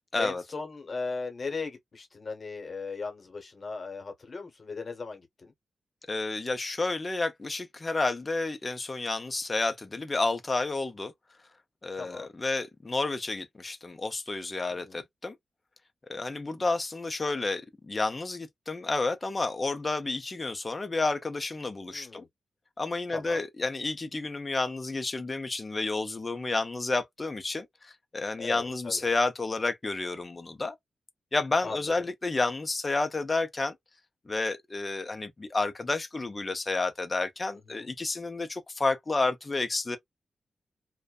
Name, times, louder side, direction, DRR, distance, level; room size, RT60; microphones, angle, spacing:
voice 1, 0.2-5.5 12.0-12.3 14.7-15.0 21.9-22.3 23.1-23.4 28.4-29.0 31.6-31.8 37.7-37.9, left 4 dB, 40° left, 1.0 m, -37 dB
voice 2, 6.1-11.1 11.8-15.4 16.1-22.3 22.8-30.8 31.3-33.8 34.3-40.0, left 3 dB, 25° left, 0.5 m, -30 dB
2.5 x 2.1 x 2.3 m
wide cardioid pair, 135°, 0 cm